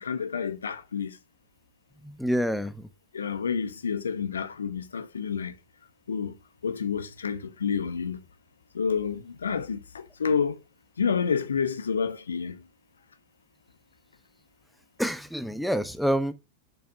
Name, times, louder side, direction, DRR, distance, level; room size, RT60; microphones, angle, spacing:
voice 1, 0.0-1.1 3.1-5.5 6.1-6.3 6.6-8.2 8.7-10.6 11.0-12.6, left 6 dB, 70° left, 1.0 m, -29 dB
voice 2, 2.0-2.9 15.0-16.3, equal, ahead, 1.0 m, -27 dB
8.1 x 7.0 x 7.6 m
figure-of-eight pair, 90°, 0 cm